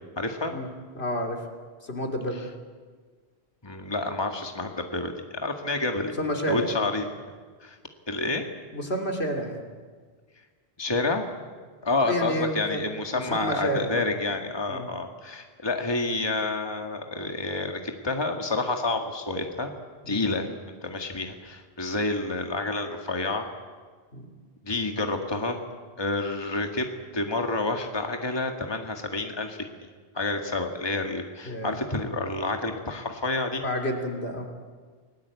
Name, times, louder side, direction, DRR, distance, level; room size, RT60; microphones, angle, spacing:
voice 1, 0.2-0.5 3.6-6.1 6.5-7.4 7.6-7.8 8.1-8.4 10.8-11.3 11.8-19.7 20.1-20.5 20.8-23.5 24.6-25.6 26.0-26.9 27.1-29.7 30.1-33.6, left 2 dB, 25° left, 4 dB, 1.8 m, -29 dB
voice 2, 0.9-1.5 1.8-2.4 6.2-6.9 8.7-9.6 12.0-12.8 13.1-14.0 14.7-14.9 20.0-20.2 24.1-24.2 31.4-31.8 33.6-34.5, equal, 70° left, 3 dB, 3.4 m, -30 dB
29.5 x 19.5 x 8.3 m, 1.5 s
omnidirectional pair, 1.1 m